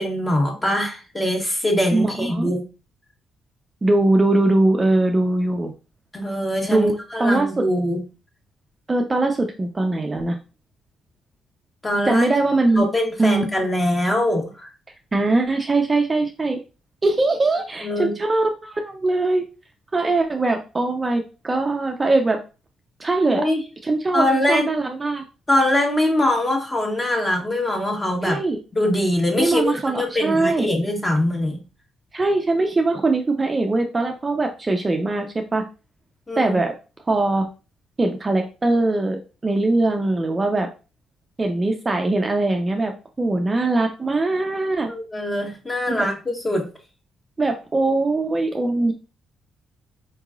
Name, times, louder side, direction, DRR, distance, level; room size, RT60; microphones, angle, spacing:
voice 1, 0.0-2.6 6.1-8.0 11.8-12.3 12.8-14.7 17.8-18.1 23.3-23.6 24.1-24.7 25.5-28.4 28.7-31.6 36.3-36.6 44.9-46.7, left 1 dB, 20° left, 1 dB, 1.3 m, -22 dB
voice 2, 1.9-2.5 3.8-5.7 6.7-7.7 8.9-10.4 12.0-12.9 13.2-13.5 15.1-16.6 17.0-19.4 19.9-22.4 23.0-23.5 23.8-25.2 28.2-28.6 29.4-30.7 32.1-35.6 36.4-36.7 37.1-37.5 38.0-40.7 41.4-42.9 43.2-44.9 45.9-46.1 47.4-48.9, right 2 dB, 25° right, 3 dB, 0.5 m, -21 dB
4.6 x 2.9 x 2.4 m, 0.32 s
cardioid pair, 90°, 0 cm